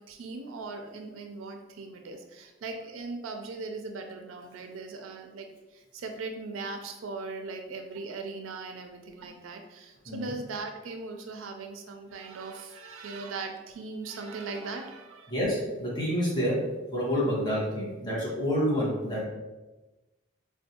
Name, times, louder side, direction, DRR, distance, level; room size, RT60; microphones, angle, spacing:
voice 1, 0.0-15.3, right 3 dB, 85° right, 4 dB, 0.4 m, -39 dB
voice 2, 15.3-16.6 16.9-19.2, equal, 20° left, -6 dB, 1.1 m, -28 dB
4.3 x 2.3 x 2.8 m, 1.1 s
head